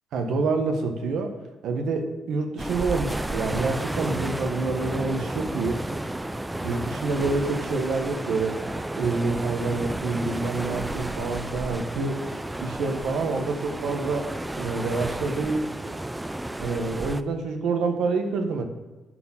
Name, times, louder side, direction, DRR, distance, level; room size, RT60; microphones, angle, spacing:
voice 1, 0.1-1.3 1.6-5.8 6.6-8.6 8.9-12.2 12.6-15.6 16.6-18.6, right 3 dB, 80° right, 5 dB, 1.5 m, -27 dB
sound 1, 2.6-17.2, right 1 dB, 10° right, 0.4 m, -32 dB
10.5 x 4.6 x 7.3 m, 1.2 s
cardioid pair, 100°, 0 cm